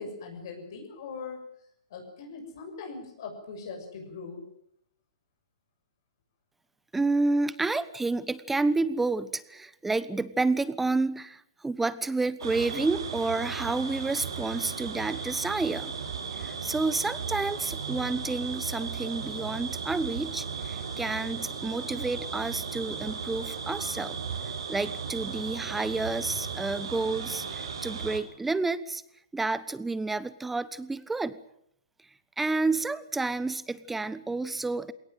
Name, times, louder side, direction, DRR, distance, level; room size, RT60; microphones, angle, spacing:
voice 1, 0.0-1.4 1.9-4.5, left 4 dB, 55° left, 3 dB, 6.9 m, -40 dB
voice 2, 6.9-15.9 16.4-24.2 24.7-29.0 29.3-31.4 32.4-34.9, right 3 dB, 5° right, 16 dB, 1.0 m, -30 dB
sound 1, 12.4-28.2, right 5 dB, 75° right, 6.6 m, -36 dB
21.0 x 18.5 x 9.2 m, 0.72 s
hypercardioid pair, 135°, 3 cm